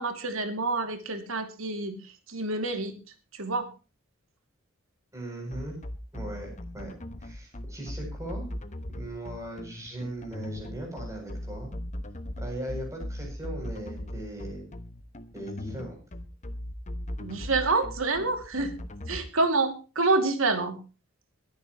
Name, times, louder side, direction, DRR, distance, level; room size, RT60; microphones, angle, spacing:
voice 1, 0.0-2.0 2.3-2.9 3.4-3.7 17.2-18.7 19.1-20.8, right 3 dB, 80° right, 6 dB, 2.6 m, -27 dB
voice 2, 5.1-5.8 6.1-6.9 7.2-8.5 8.9-11.7 12.4-14.7 15.3-16.0, right 1 dB, 15° right, 0 dB, 7.7 m, -38 dB
sound 1, 5.5-19.2, left 1 dB, 35° left, 1.1 m, -38 dB
22.5 x 10.5 x 3.1 m, 0.32 s
head